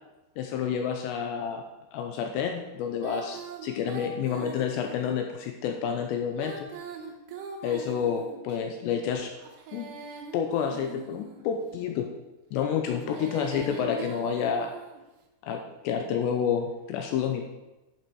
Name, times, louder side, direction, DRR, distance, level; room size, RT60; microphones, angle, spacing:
voice 1, 0.4-1.6 1.9-6.7 7.6-9.3 9.7-9.9 10.3-12.1 12.5-14.7 15.4-17.4, left 7 dB, 90° left, 4 dB, 2.5 m, -29 dB
Female singing, 3.0-5.1 6.3-8.6 9.4-11.5 12.8-15.0, right 5 dB, 70° right, 2.8 m, -42 dB
11.0 x 7.6 x 4.8 m, 1.0 s
omnidirectional pair, 5.8 m